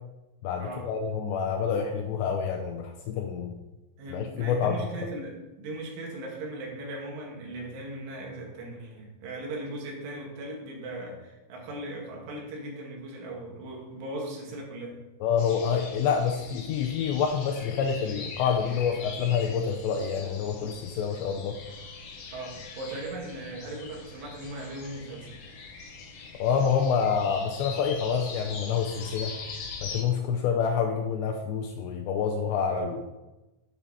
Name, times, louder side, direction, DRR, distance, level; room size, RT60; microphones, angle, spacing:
voice 1, 0.4-3.5 4.1-4.8 15.2-21.6 26.4-29.4 29.8-33.0, left 7 dB, 80° left, 4 dB, 2.6 m, -27 dB
voice 2, 4.0-15.0 22.3-25.3 32.7-32.9, right 1 dB, 75° right, -1 dB, 4.4 m, -38 dB
sound 1, 15.4-30.0, left 4 dB, 65° left, 2.4 m, -42 dB
9.5 x 9.1 x 4.1 m, 1.0 s
omnidirectional pair, 5.6 m